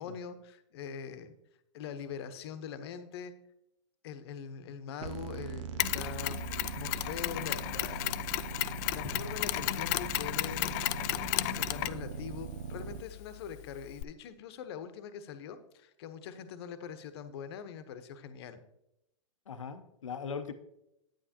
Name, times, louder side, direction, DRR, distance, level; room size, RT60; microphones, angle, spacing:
voice 1, 0.0-1.3 1.7-3.3 4.0-6.4 6.7-8.1 8.9-10.8 11.5-18.6, left 7 dB, 55° left, 10 dB, 0.9 m, -43 dB
sound 1, 5.0-13.0, right 6 dB, 70° right, 0.7 m, -41 dB
Mechanisms, 5.8-14.0, left 17 dB, 35° left, 0.3 m, -34 dB
voice 2, 19.5-20.5, left 6 dB, 85° left, 9 dB, 0.7 m, -39 dB
9.2 x 9.0 x 2.8 m, 0.84 s
hypercardioid pair, 115°, 16 cm